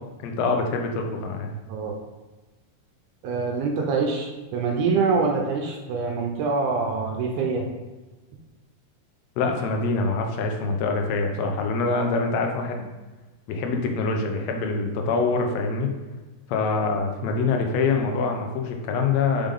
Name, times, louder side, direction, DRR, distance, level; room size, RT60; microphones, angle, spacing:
voice 1, 0.2-1.5 9.4-12.9 13.5-15.9 16.5-19.5, left 4 dB, 75° left, 3 dB, 1.6 m, -25 dB
voice 2, 3.2-7.7, right 4 dB, 75° right, 1 dB, 2.1 m, -25 dB
5.2 x 5.1 x 3.7 m, 1.2 s
omnidirectional pair, 3.8 m